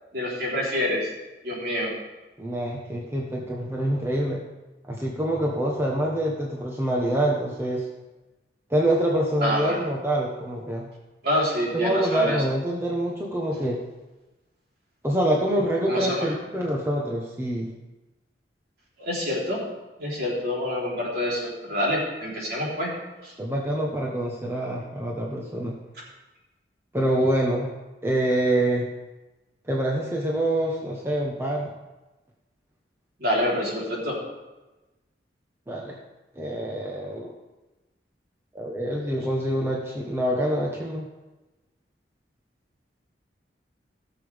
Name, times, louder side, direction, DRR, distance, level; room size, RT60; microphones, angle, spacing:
voice 1, 0.1-1.1 1.4-1.9 9.4-9.9 11.2-12.4 15.8-16.3 19.0-19.6 20.0-22.9 23.2-23.3 33.2-34.2, left 1 dB, 60° right, -5 dB, 3.7 m, -27 dB
voice 2, 2.4-4.4 4.9-7.9 8.7-10.9 11.7-13.8 15.0-17.7 23.4-25.8 26.9-27.7 28.0-28.9 29.7-31.7 35.7-36.0 36.4-37.3 38.5-41.1, right 1 dB, 15° right, -2 dB, 1.1 m, -26 dB
16.5 x 6.9 x 3.5 m, 1.1 s
head